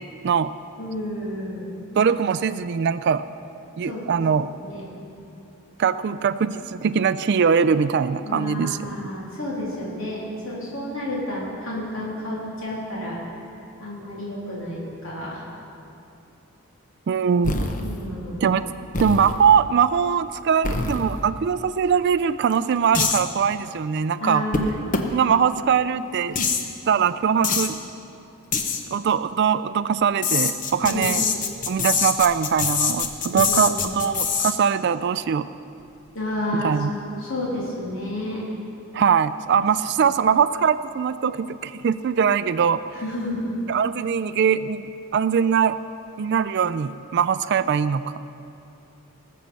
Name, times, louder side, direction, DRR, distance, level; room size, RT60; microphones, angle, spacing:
voice 1, 0.8-1.6 3.9-4.0 4.6-4.8 8.2-10.2 10.4-13.2 13.8-15.4 17.1-17.2 17.8-18.4 24.2-24.8 30.8-31.1 33.3-34.0 36.1-36.8 37.2-38.4 40.0-40.1 42.9-43.5, left 1 dB, 60° left, -6 dB, 3.2 m, -30 dB
voice 2, 2.0-3.2 3.8-4.5 5.8-8.9 17.1-17.7 18.4-18.7 19.0-24.4 25.1-26.4 26.9-27.8 28.9-31.2 31.7-35.5 36.6-36.9 38.9-42.8 43.7-45.8 46.2-48.1, right 7 dB, 50° right, 14 dB, 0.3 m, -21 dB
sound 1, 17.4-18.0 18.9-19.5 20.6-21.3 22.5-22.6 22.9-23.2 24.5-24.6 24.9-25.0 26.3-26.6 27.4-27.7 28.5-28.8 30.2-34.5, left 5 dB, 35° left, 0.9 m, -24 dB
19.0 x 7.4 x 6.9 m, 2.7 s
head